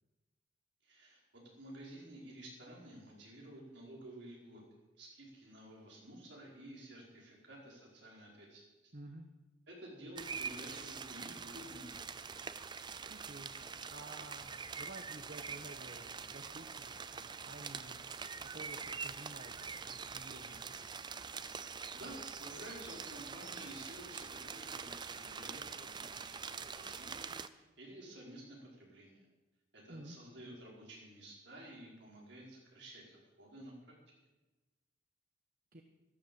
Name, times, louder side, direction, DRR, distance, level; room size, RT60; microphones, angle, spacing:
voice 1, 0.8-4.6 5.0-8.9 9.7-11.9 21.6-29.3 29.7-33.9, right 1 dB, 60° right, -2 dB, 4.9 m, -52 dB
voice 2, 8.9-9.3 13.1-13.6 13.9-18.0 18.4-20.9 29.9-30.2 35.7-35.8, right 1 dB, 45° right, 4 dB, 1.2 m, -52 dB
sound 1, 10.2-27.5, right 5 dB, 20° right, 0.4 m, -45 dB
12.5 x 12.0 x 7.8 m, 1.1 s
head